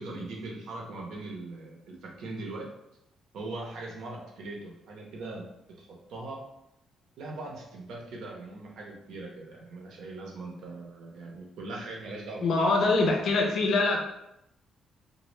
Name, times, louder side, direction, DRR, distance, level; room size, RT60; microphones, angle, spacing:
voice 1, 0.0-2.7 3.3-5.5 5.8-6.4 7.2-13.0, right 2 dB, 75° right, -1 dB, 0.6 m, -40 dB
voice 2, 12.4-14.0, left 3 dB, 60° left, 1 dB, 0.5 m, -24 dB
2.0 x 2.0 x 3.1 m, 0.83 s
cardioid pair, 140°, 0 cm